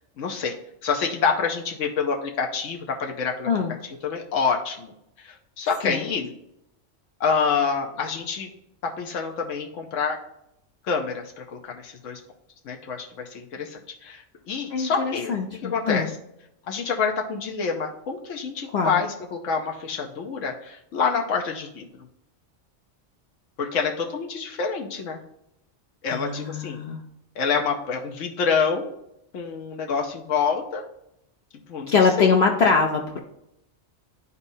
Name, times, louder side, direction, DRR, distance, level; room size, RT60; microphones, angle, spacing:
voice 1, 0.2-0.6 0.8-3.5 4.0-6.3 7.2-8.5 8.8-10.2 10.9-12.2 12.6-15.3 15.6-16.1 16.7-21.8 23.6-25.2 26.0-26.8 27.4-28.9 29.3-30.8 31.7-32.3, left 5 dB, 85° left, 1 dB, 1.1 m, -27 dB
voice 2, 14.7-16.1 18.7-19.0 26.1-27.0 31.9-33.2, left 5 dB, 60° left, 2 dB, 0.9 m, -23 dB
11.0 x 4.1 x 2.7 m, 0.80 s
omnidirectional pair, 1.3 m